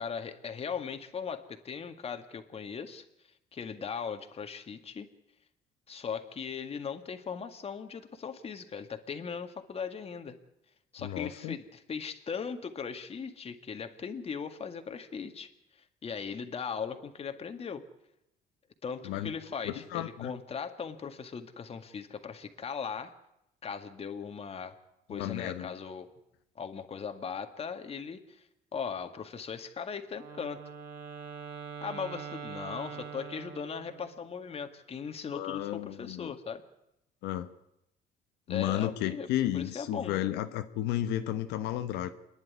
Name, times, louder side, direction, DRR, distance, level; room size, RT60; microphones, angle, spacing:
voice 1, 0.0-3.0 3.5-5.1 5.9-10.4 10.9-15.5 15.7-17.8 18.8-23.1 23.6-24.7 25.1-26.1 26.6-28.4 28.7-30.6 31.8-36.6 38.5-40.2, left 6 dB, 35° left, 7 dB, 2.0 m, -38 dB
voice 2, 11.0-11.5 19.0-19.3 19.6-20.3 25.1-25.7 35.3-36.3 37.2-37.5 38.5-42.1, left 13 dB, 90° left, 8 dB, 1.1 m, -33 dB
Wind instrument woodwind instrument, 30.1-34.2, right 7 dB, 75° right, 3.7 m, -43 dB
27.0 x 11.0 x 9.7 m, 0.85 s
cardioid pair, 110°, 17 cm